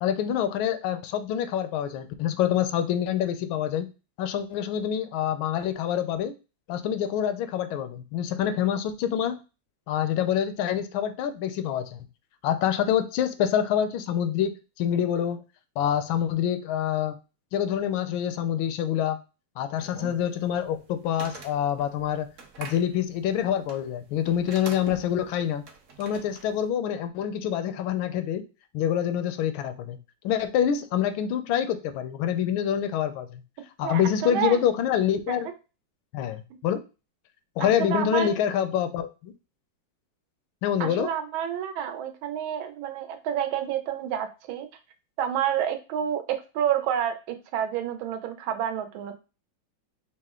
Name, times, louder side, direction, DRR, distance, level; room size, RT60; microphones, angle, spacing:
voice 1, 0.0-3.9 4.2-6.3 6.7-9.4 9.9-12.1 12.4-15.4 15.8-17.2 17.5-19.2 19.6-22.3 22.6-25.6 26.0-28.4 28.7-30.0 30.2-33.4 33.8-35.5 36.1-36.8 37.6-39.3 40.6-41.1, left 9 dB, 85° left, 10 dB, 1.4 m, -26 dB
sound 1, 19.8-26.7, right 4 dB, 65° right, 0.8 m, -45 dB
voice 2, 33.8-34.6 35.3-35.4 37.6-38.3 40.8-44.7 45.2-49.2, right 9 dB, 85° right, 7 dB, 1.5 m, -29 dB
5.3 x 2.1 x 3.5 m, 0.31 s
omnidirectional pair, 2.2 m